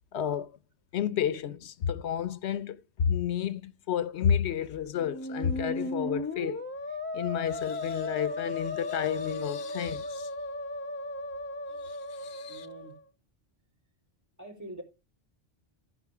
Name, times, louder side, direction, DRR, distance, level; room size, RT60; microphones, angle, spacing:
voice 1, 0.1-0.5 0.9-6.6 7.1-10.3 11.8-12.7, left 8 dB, 85° left, 1.0 m, -31 dB
Musical instrument, 5.0-13.0, left 2 dB, 10° left, 0.9 m, -36 dB
voice 2, 12.5-12.9 14.4-14.8, right 1 dB, 15° right, 3.2 m, -44 dB
14.5 x 5.0 x 4.9 m
omnidirectional pair, 1.1 m